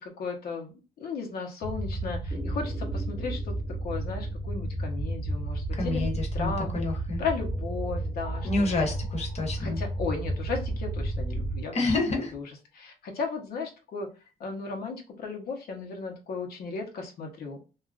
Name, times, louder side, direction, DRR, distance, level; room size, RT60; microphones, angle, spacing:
voice 1, 0.2-3.5 3.8-6.0 6.3-6.8 7.2-8.9 9.6-11.9 12.3-12.4 12.7-14.1 14.4-17.6, left 4 dB, 85° left, 1 dB, 0.9 m, -35 dB
sound 1, 1.6-11.6, right 1 dB, 20° left, 0.6 m, -32 dB
sound 2, 2.3-6.5 7.5-11.3, equal, 5° right, 0.9 m, -48 dB
voice 2, 5.7-7.2 8.4-9.8 11.7-12.4, left 3 dB, 45° left, 2 dB, 0.9 m, -29 dB
2.9 x 2.4 x 2.5 m, 0.32 s
wide cardioid pair, 140°, 16 cm